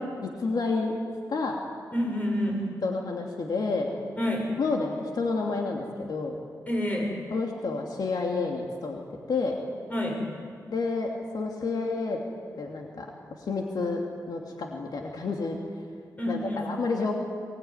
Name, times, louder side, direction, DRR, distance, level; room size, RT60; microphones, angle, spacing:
voice 1, 0.4-0.9 1.3-1.6 2.8-3.9 4.6-6.4 7.3-9.0 9.3-9.6 10.7-12.2 12.6-13.1 13.5-14.0 14.3-15.6 16.3-17.1, left 3 dB, 75° left, 1 dB, 2.8 m, -29 dB
voice 2, 1.9-2.6 4.2-4.4 6.7-7.1 9.9-10.2 16.2-16.7, left 1 dB, 20° left, 0 dB, 7.6 m, -28 dB
23.0 x 23.0 x 9.7 m, 2.1 s
wide cardioid pair, 115°, 7 cm